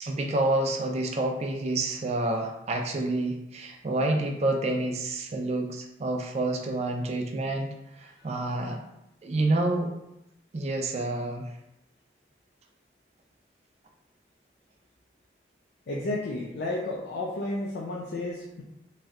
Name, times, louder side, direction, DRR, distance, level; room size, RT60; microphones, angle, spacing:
voice 1, 0.0-8.8 9.2-9.9 10.5-11.5, right 2 dB, 35° right, 3 dB, 0.4 m, -28 dB
voice 2, 15.9-18.6, left 2 dB, 70° left, -3 dB, 0.4 m, -32 dB
3.1 x 2.6 x 2.4 m, 0.86 s
head